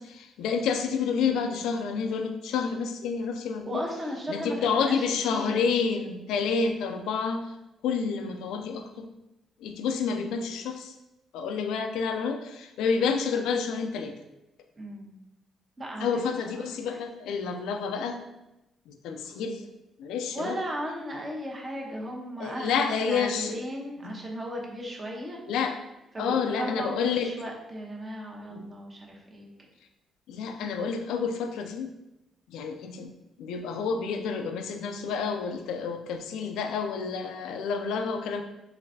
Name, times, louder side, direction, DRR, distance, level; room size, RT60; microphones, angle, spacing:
voice 1, 0.0-3.8 4.3-7.6 7.8-9.1 9.6-11.0 11.3-14.1 16.0-18.2 18.9-19.6 20.0-20.6 22.4-23.6 24.0-24.2 25.5-25.8 26.2-27.3 28.5-28.7 30.3-31.9 32.5-33.1 33.4-38.4, left 5 dB, 85° left, 6 dB, 0.3 m, -29 dB
voice 2, 3.6-5.6 14.8-15.1 15.8-17.0 20.3-25.4 26.1-29.5, equal, 30° right, -1 dB, 0.8 m, -36 dB
3.9 x 3.2 x 2.7 m, 0.93 s
cardioid pair, 90°, 0 cm